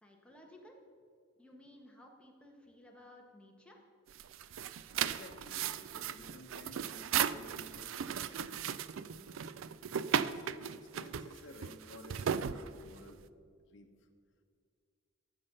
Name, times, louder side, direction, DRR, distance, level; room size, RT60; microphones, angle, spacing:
voice 1, 0.0-0.8 1.4-3.8, left 1 dB, 5° left, 0 dB, 1.4 m, -57 dB
sound 1, 4.1-13.2, right 8 dB, 85° right, 0.4 m, -36 dB
voice 2, 5.0-9.5 10.2-13.2 13.7-13.9, left 1 dB, 60° left, 3 dB, 1.0 m, -54 dB
14.0 x 6.9 x 5.5 m, 2.1 s
head